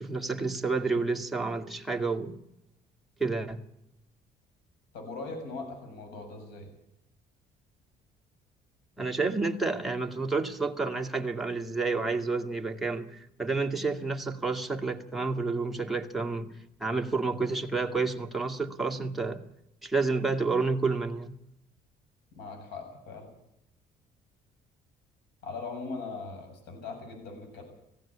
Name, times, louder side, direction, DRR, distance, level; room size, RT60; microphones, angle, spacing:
voice 1, 0.0-2.4 3.2-3.6 9.0-19.4 19.8-21.4, right 3 dB, ahead, 2.1 m, -30 dB
voice 2, 4.9-6.7 22.4-23.3 25.4-27.6, left 3 dB, 85° left, 7.2 m, -40 dB
19.0 x 16.0 x 8.6 m
cardioid pair, 110°, 17 cm